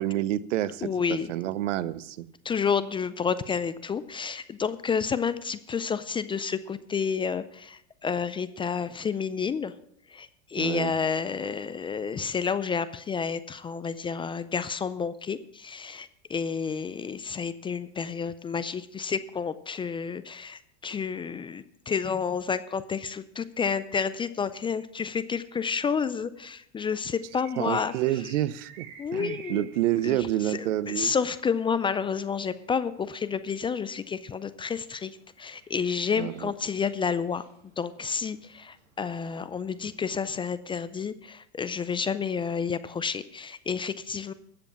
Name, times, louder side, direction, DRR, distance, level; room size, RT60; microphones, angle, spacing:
voice 1, 0.0-2.3 10.6-10.9 27.6-31.1 36.2-36.5, right 13 dB, 85° right, 18 dB, 0.7 m, -29 dB
voice 2, 0.8-1.3 2.4-9.7 10.1-27.9 29.0-29.7 30.0-30.2 30.5-37.5 37.8-44.3, left 6 dB, 15° left, 14 dB, 0.3 m, -30 dB
sound 1, 27.1-40.1, right 7 dB, 55° right, 5.3 m, -54 dB
13.5 x 7.7 x 5.7 m, 0.71 s
supercardioid pair, 110°, 36 cm